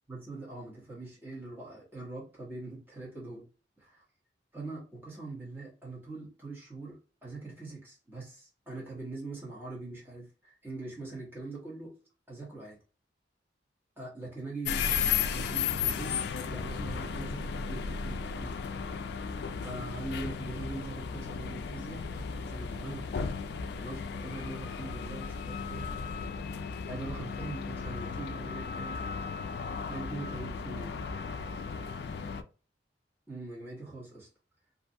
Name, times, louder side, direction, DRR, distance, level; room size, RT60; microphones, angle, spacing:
voice 1, 0.1-3.5 3.8-4.0 4.5-11.9 12.3-12.8 14.0-15.0 15.3-18.5 19.6-22.0 22.3-23.1 23.8-25.9 26.9-29.0 29.9-31.0 33.3-34.3, right 3 dB, 10° right, -5 dB, 1.2 m, -42 dB
sound 1, 14.6-32.4, left 6 dB, 65° left, 0.3 m, -35 dB
2.6 x 2.4 x 2.6 m, 0.35 s
head